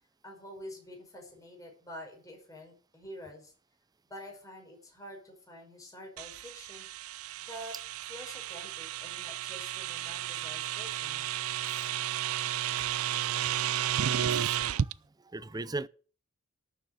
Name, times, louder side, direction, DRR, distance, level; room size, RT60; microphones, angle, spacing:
voice 1, 0.2-3.5 4.1-6.9 7.4-11.3, equal, 15° left, 5.3 m, -47 dB
sound 1, 6.2-14.9, right 10 dB, 85° right, 0.5 m, -33 dB
voice 2, 14.3-14.9 15.3-15.9, right 3 dB, 20° right, 0.5 m, -38 dB
12.5 x 7.1 x 8.0 m
head